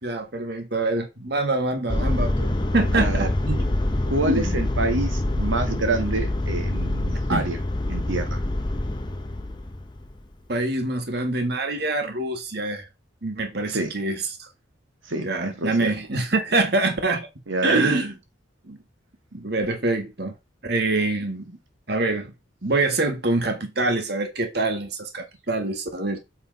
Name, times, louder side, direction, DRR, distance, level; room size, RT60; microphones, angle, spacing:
voice 1, 0.0-3.7 4.2-4.6 7.3-7.4 10.5-12.9 13.2-14.5 15.1-17.3 17.6-18.1 18.7-18.8 19.3-20.3 20.6-21.6 21.9-22.3 22.6-26.2, right 2 dB, 55° right, 1.6 m, -25 dB
sound 1, 1.9-10.2, left 1 dB, 20° left, 0.8 m, -25 dB
voice 2, 2.9-3.3 4.1-7.6 7.9-8.4 13.7-13.9 15.1-15.9 17.5-17.8, right 2 dB, 80° right, 1.5 m, -27 dB
7.7 x 3.5 x 5.2 m
head